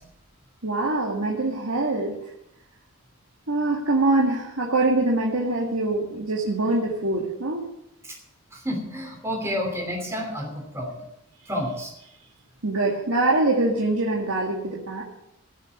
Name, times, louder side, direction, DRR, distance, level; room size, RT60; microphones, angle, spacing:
voice 1, 0.6-2.2 3.5-7.7 12.6-15.0, right 2 dB, 80° right, -2 dB, 1.9 m, -24 dB
voice 2, 8.5-11.0 11.5-11.9, equal, 15° right, 1 dB, 3.0 m, -30 dB
16.5 x 6.7 x 7.6 m, 0.81 s
head